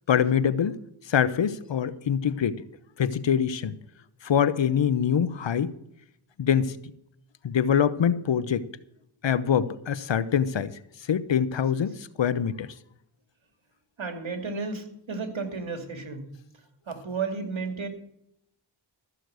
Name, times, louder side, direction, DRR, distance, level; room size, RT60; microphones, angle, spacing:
voice 1, 0.1-0.8 1.1-2.6 3.0-3.8 4.2-5.7 6.4-6.7 7.4-8.7 9.2-10.8 11.1-12.7, left 8 dB, 70° left, 15 dB, 0.9 m, -24 dB
voice 2, 14.0-16.3 16.9-17.9, right 4 dB, 75° right, 5 dB, 2.6 m, -33 dB
14.0 x 6.6 x 7.8 m, 0.75 s
cardioid pair, 55°, 47 cm